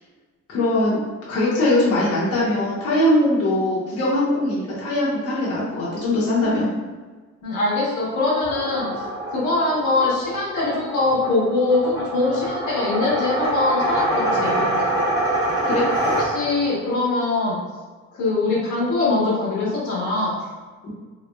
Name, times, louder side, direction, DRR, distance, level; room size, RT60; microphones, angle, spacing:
voice 1, 0.5-1.0 1.3-6.7 15.6-15.8 20.8-20.9, left 1 dB, 50° left, -8 dB, 1.0 m, -21 dB
voice 2, 7.4-8.9 9.3-14.9 16.2-17.6 18.1-20.4, left 2 dB, 80° left, -6 dB, 1.2 m, -22 dB
sound 1, 8.4-16.7, right 1 dB, 10° right, 1.2 m, -25 dB
3.4 x 3.0 x 2.3 m, 1.4 s
cardioid pair, 150°, 30 cm